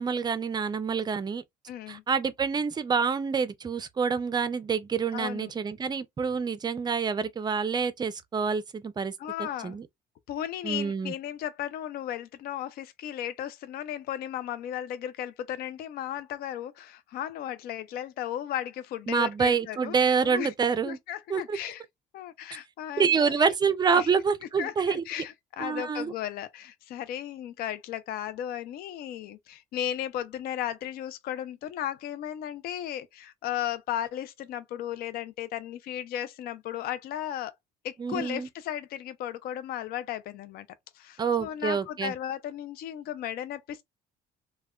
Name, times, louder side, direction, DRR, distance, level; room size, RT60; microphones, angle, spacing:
voice 1, 0.0-1.4 1.9-9.1 9.6-9.8 10.6-11.1 19.1-21.0 21.3-21.6 23.0-25.0 25.6-26.1 38.0-38.5 41.2-42.1, right 5 dB, 25° right, 0.4 m, -27 dB
voice 2, 1.7-2.0 5.1-5.5 9.2-9.8 10.3-20.0 20.2-20.5 20.8-21.8 22.1-23.4 23.9-24.1 24.6-37.5 37.8-40.7 40.9-43.8, left 11 dB, 65° left, 0.4 m, -35 dB
2.2 x 2.1 x 3.5 m
cardioid pair, 110°, 17 cm